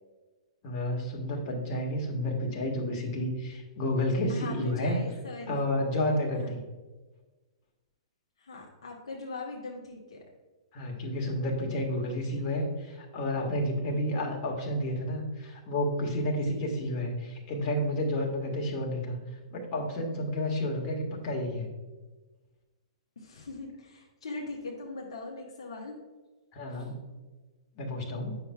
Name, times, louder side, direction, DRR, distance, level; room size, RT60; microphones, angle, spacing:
voice 1, 0.6-5.0 5.5-6.6 10.7-19.2 19.5-21.7 26.5-27.0 27.8-28.3, left 1 dB, 40° left, 0 dB, 1.6 m, -30 dB
voice 2, 4.3-5.7 6.3-6.5 8.4-10.2 23.2-26.0 26.7-26.9, left 3 dB, 70° left, -1 dB, 1.2 m, -41 dB
9.3 x 5.8 x 2.3 m, 1.2 s
figure-of-eight pair, 110°, 3 cm